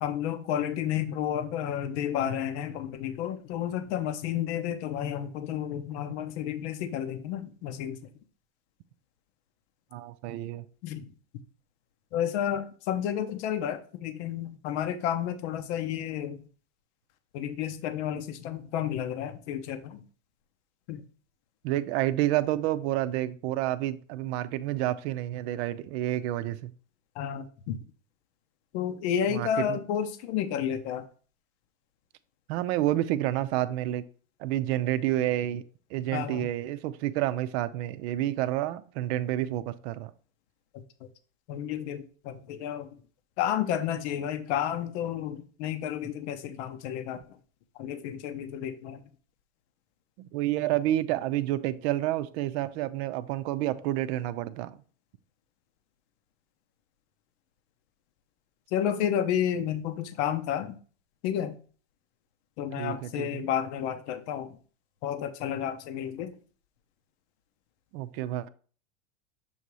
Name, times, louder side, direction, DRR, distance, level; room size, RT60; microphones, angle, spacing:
voice 1, 0.0-8.1 10.8-11.0 12.1-16.4 17.3-20.0 20.9-21.0 27.2-27.8 28.7-31.0 36.1-36.5 40.7-40.8 41.5-42.9 43.4-47.2 47.8-49.0 58.7-60.7 61.2-61.6 62.6-64.6 65.0-66.3, left 9 dB, 60° left, 9 dB, 0.9 m, -31 dB
voice 2, 9.9-10.6 21.6-26.7 29.3-29.8 32.5-34.0 34.4-35.6 35.9-40.1 50.2-54.8 62.8-63.5 67.9-68.5, right 14 dB, 55° right, 13 dB, 0.6 m, -29 dB
7.1 x 2.8 x 4.7 m, 0.41 s
hypercardioid pair, 115°, 38 cm